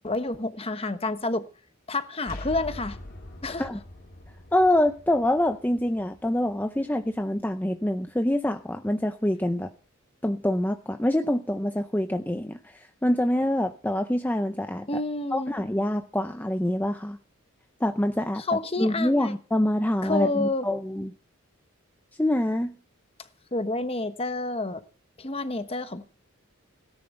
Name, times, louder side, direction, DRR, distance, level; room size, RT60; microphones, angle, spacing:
voice 1, 0.0-1.4 1.9-3.0 3.4-3.7 14.9-15.5 18.5-19.3 20.0-20.6 23.5-24.8 25.2-26.0, left 2 dB, 25° left, 1.2 m, -29 dB
sound 1, 2.2-7.9, left 1 dB, 45° left, 3.3 m, -44 dB
voice 2, 4.5-9.7 10.2-14.9 15.3-17.2 17.8-18.4 18.8-21.1 22.2-22.7, left 1 dB, 10° left, 0.6 m, -25 dB
17.0 x 10.5 x 5.4 m
head